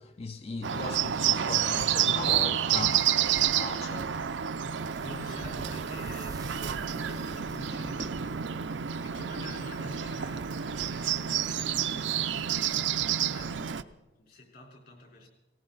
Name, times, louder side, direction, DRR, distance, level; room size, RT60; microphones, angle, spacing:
voice 1, 0.0-3.1 3.4-4.2, left 4 dB, 35° left, 0.4 m, -38 dB
Bird, 0.6-13.8, right 9 dB, 80° right, 0.6 m, -29 dB
sound 1, 4.8-9.6, right 2 dB, 20° right, 0.5 m, -47 dB
voice 2, 5.0-8.4 9.0-15.3, left 1 dB, 55° left, 4.1 m, -48 dB
19.0 x 19.0 x 4.0 m
head